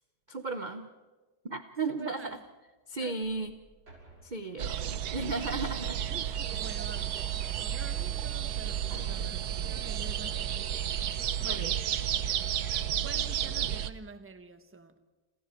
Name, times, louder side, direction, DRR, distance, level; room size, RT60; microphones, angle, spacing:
voice 1, 0.3-0.9 1.4-2.4 2.9-3.5 4.2-6.0 11.4-11.7, right 3 dB, 35° right, 0.8 m, -35 dB
voice 2, 1.9-2.4 3.0-3.3 6.1-11.0 11.4-11.8 13.0-15.0, right 3 dB, 10° right, 1.0 m, -47 dB
sound 1, 3.2-9.2, right 1 dB, 90° right, 7.8 m, -56 dB
sound 2, 4.6-13.9, right 9 dB, 65° right, 1.3 m, -32 dB
28.0 x 28.0 x 4.5 m
omnidirectional pair, 2.0 m